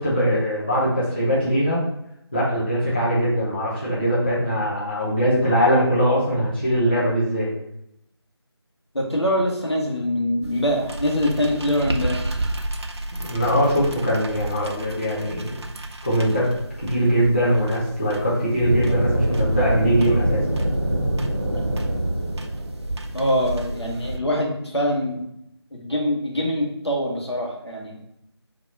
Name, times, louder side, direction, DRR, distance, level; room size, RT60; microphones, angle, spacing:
voice 1, 0.0-1.8 2.3-7.5 13.3-15.4 16.0-16.5 16.8-20.4, equal, 20° left, -9 dB, 0.9 m, -21 dB
voice 2, 8.9-12.2 23.1-25.2 25.7-28.0, equal, 70° left, -2 dB, 1.4 m, -24 dB
sound 1, 10.4-24.2, right 1 dB, 75° right, 0.6 m, -33 dB
sound 2, 18.6-23.4, right 1 dB, 20° right, 0.8 m, -24 dB
4.1 x 2.5 x 4.5 m, 0.80 s
figure-of-eight pair, 170°, 14 cm